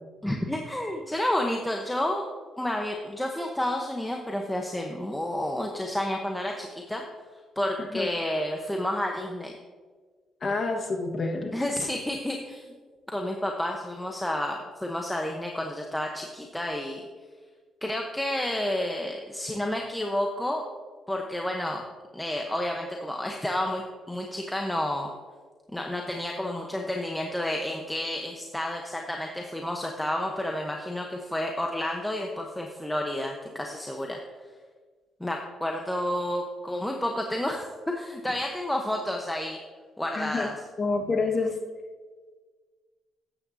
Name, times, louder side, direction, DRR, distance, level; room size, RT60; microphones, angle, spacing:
voice 1, 0.2-2.2 2.6-7.0 7.6-9.5 11.5-12.7 13.1-17.0 17.8-20.6 21.1-21.8 22.1-25.1 25.7-34.2 35.2-39.6 40.0-40.5, left 1 dB, 5° left, 1 dB, 0.9 m, -30 dB
voice 2, 10.4-11.5 40.1-40.5 40.8-41.5, left 3 dB, 40° left, 2 dB, 1.4 m, -28 dB
13.0 x 8.9 x 2.7 m, 1.5 s
cardioid pair, 90°, 0 cm